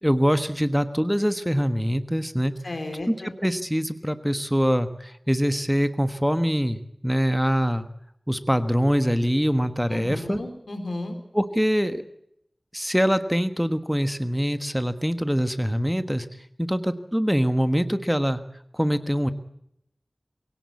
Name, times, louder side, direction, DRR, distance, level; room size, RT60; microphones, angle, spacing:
voice 1, 0.0-2.5 3.1-3.2 3.4-7.9 8.3-10.4 11.3-12.0 12.7-16.3 16.6-18.4 18.7-19.3, equal, 5° right, 10 dB, 1.3 m, -24 dB
voice 2, 2.6-3.3 9.9-11.2, left 2 dB, 90° left, 6 dB, 3.7 m, -33 dB
22.5 x 17.5 x 8.4 m, 0.76 s
wide cardioid pair, 60°, 0 cm